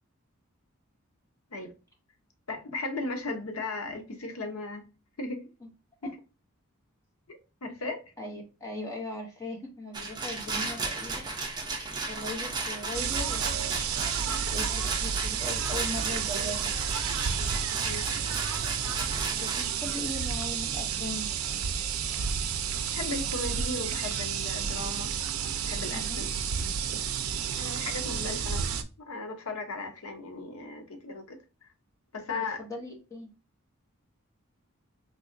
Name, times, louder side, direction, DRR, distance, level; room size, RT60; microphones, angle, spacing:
voice 1, 2.5-4.9 5.2-5.5 6.0-6.1 7.3-8.0 17.8-18.1 22.9-25.1 25.6-26.3 27.6-28.6 29.0-31.4 32.1-32.6, left 3 dB, 85° left, 0.8 m, -36 dB
voice 2, 8.2-11.3 12.1-13.9 14.5-16.8 19.2-21.3 25.9-26.3 28.1-28.4 32.3-33.3, left 2 dB, 15° left, 0.8 m, -39 dB
Rattle, 9.9-19.6, right 3 dB, 20° right, 0.5 m, -35 dB
sound 1, 12.9-28.8, right 7 dB, 75° right, 0.4 m, -31 dB
3.8 x 2.8 x 2.5 m
head